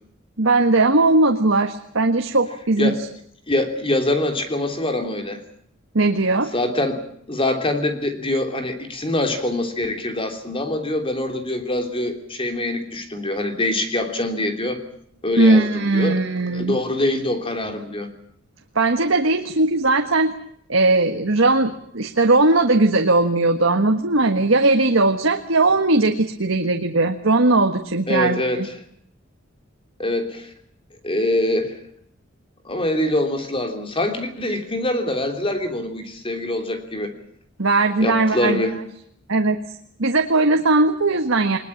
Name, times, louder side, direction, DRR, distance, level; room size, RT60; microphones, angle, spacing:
voice 1, 0.4-2.9 5.9-6.5 15.4-16.8 18.7-20.3 20.7-28.7 37.6-38.6 39.3-39.6 40.0-41.6, right 2 dB, 80° right, 5 dB, 1.6 m, -18 dB
voice 2, 3.5-5.4 6.5-7.0 7.3-14.8 15.2-16.2 16.5-18.1 28.1-28.7 30.0-30.5 31.0-31.7 32.6-37.1 38.0-38.8, left 1 dB, 30° left, 6 dB, 3.1 m, -24 dB
21.5 x 21.0 x 8.7 m, 0.67 s
head